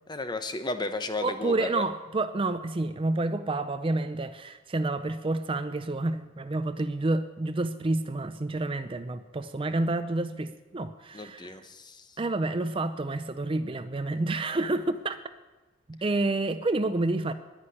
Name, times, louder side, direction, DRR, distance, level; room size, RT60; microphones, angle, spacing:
voice 1, 0.1-1.8 11.1-12.1, left 2 dB, 20° left, 9 dB, 0.9 m, -33 dB
voice 2, 1.2-11.6 12.2-15.2 15.9-17.3, right 2 dB, 25° right, 11 dB, 0.5 m, -29 dB
10.5 x 9.8 x 9.7 m, 1.2 s
head